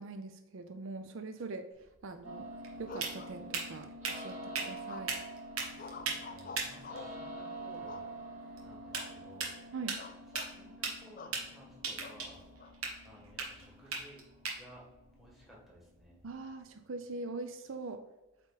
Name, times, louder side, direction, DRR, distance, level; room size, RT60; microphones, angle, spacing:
voice 1, 0.0-2.5 2.8-5.1 9.7-10.0 16.2-18.0, right 3 dB, 65° right, 8 dB, 0.5 m, -43 dB
sound 1, 1.7-16.4, right 4 dB, 80° right, 1.4 m, -42 dB
sound 2, 2.2-16.1, right 1 dB, 35° right, 2.0 m, -47 dB
sound 3, 2.8-3.9 4.9-5.3 5.8-7.2 7.9-8.4 8.9-9.2 9.5-9.6 10.0-10.5 11.2-11.4 12.0-12.7, left 4 dB, 40° left, 0.3 m, -48 dB
voice 2, 5.7-8.0 8.6-9.5 10.4-12.4 13.0-14.2 14.6-14.8 15.2-16.2, equal, ahead, -4 dB, 1.6 m, -57 dB
8.0 x 3.6 x 4.0 m, 1.0 s
head